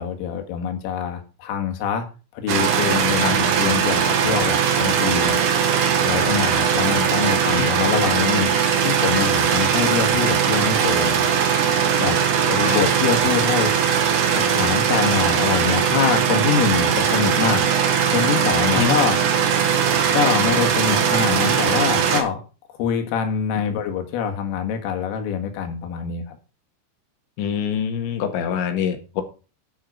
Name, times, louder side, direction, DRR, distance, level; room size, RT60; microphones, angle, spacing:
voice 1, 0.0-2.1 2.3-5.4 6.0-8.5 8.8-11.3 12.0-12.2 12.5-13.7 14.3-17.6 18.1-19.2 20.1-22.4 22.8-26.4, left 7 dB, 90° left, 4 dB, 4.4 m, -24 dB
sound 1, 2.5-22.2, right 7 dB, 60° right, 2.3 m, -20 dB
voice 2, 27.4-29.2, left 8 dB, 70° left, 7 dB, 3.6 m, -25 dB
9.7 x 7.5 x 6.5 m, 0.34 s
omnidirectional pair, 5.7 m